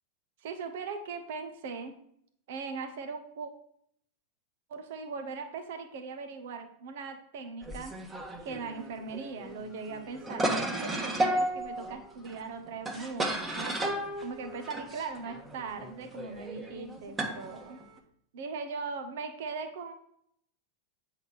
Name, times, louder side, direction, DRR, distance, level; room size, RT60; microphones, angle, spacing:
voice 1, 0.4-2.0 2.5-3.5 4.7-8.0 8.4-13.8 14.2-17.8 18.3-19.9, right 4 dB, 65° right, 6 dB, 1.3 m, -39 dB
sound 1, 7.6-18.0, right 1 dB, 15° right, 1.5 m, -34 dB
8.2 x 4.0 x 6.0 m, 0.68 s
hypercardioid pair, 105°, 0 cm